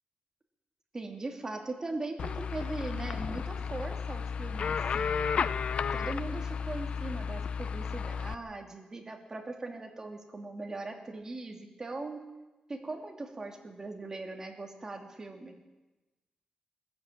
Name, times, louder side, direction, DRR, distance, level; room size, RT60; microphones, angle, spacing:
voice 1, 0.9-5.1 5.9-12.2 12.7-15.6, right 2 dB, 25° right, 2 dB, 2.9 m, -40 dB
sound 1, 2.2-8.3, left 6 dB, 60° left, 0.6 m, -33 dB
21.0 x 14.0 x 8.8 m, 1.1 s
wide cardioid pair, 125°, 2 cm